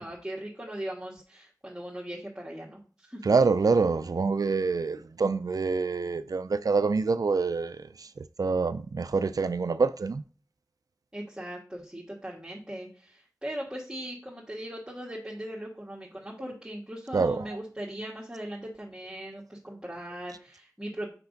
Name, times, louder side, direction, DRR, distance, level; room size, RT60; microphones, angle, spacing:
voice 1, 0.0-3.2 11.1-21.1, right 1 dB, 15° right, 1.5 m, -39 dB
voice 2, 3.2-8.1 8.4-10.2 17.1-17.4, right 4 dB, 90° right, 0.3 m, -26 dB
5.7 x 5.3 x 3.9 m
wide cardioid pair, 50°, 6 cm